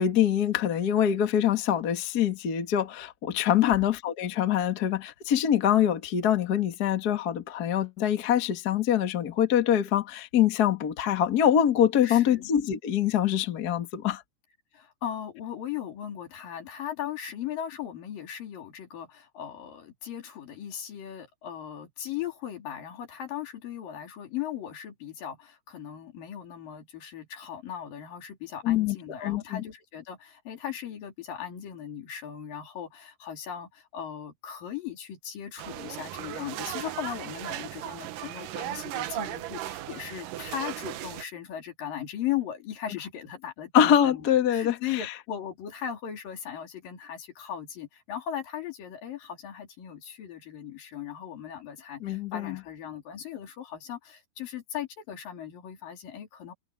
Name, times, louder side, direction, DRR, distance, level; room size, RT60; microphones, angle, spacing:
voice 1, 0.0-14.2 28.6-28.9 29.2-29.6 43.7-45.1 52.0-52.6, left 10 dB, 40° left, 1.5 m, -24 dB
voice 2, 12.0-12.5 14.7-56.5, left 10 dB, 80° left, 4.6 m, -38 dB
sound 1, 35.6-41.2, right 13 dB, 80° right, 2.6 m, -36 dB
omnidirectional pair, 3.9 m